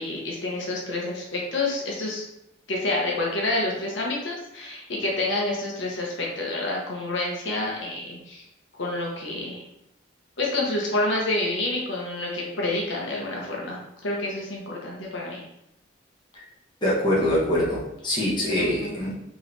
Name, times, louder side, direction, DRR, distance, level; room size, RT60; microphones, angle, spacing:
voice 1, 0.0-2.2 2.7-8.4 8.8-9.6 10.4-15.4 18.6-18.9, left 2 dB, 70° left, -3 dB, 0.9 m, -28 dB
voice 2, 16.8-19.1, left 1 dB, 25° left, -6 dB, 1.2 m, -24 dB
4.5 x 3.1 x 3.3 m, 0.85 s
head